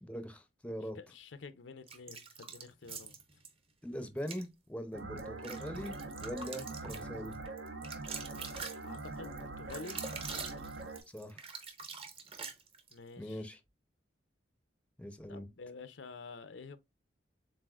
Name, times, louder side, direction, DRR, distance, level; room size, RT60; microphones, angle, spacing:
voice 1, 0.0-1.0 3.8-5.9 6.2-7.4 11.1-11.5 13.2-13.6 15.0-15.5, equal, 5° left, 0.5 m, -42 dB
voice 2, 1.0-3.2 8.8-10.0 12.9-13.4 15.3-16.8, left 4 dB, 75° left, 0.6 m, -49 dB
sound 1, 1.9-3.5 4.2-4.5 5.0-13.0, right 5 dB, 30° right, 0.7 m, -45 dB
sound 2, 4.9-11.0, right 3 dB, 85° right, 1.0 m, -43 dB
7.4 x 2.5 x 2.4 m
head